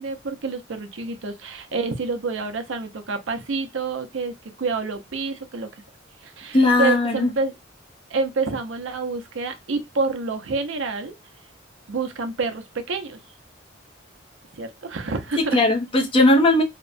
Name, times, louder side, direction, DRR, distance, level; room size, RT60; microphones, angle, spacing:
voice 1, 0.0-5.7 6.2-7.5 8.1-11.1 11.9-13.2 14.5-15.6, right 4 dB, 70° right, 0.6 m, -28 dB
voice 2, 6.5-7.3 15.4-16.6, left 2 dB, 25° left, 0.6 m, -18 dB
2.8 x 2.1 x 2.5 m
head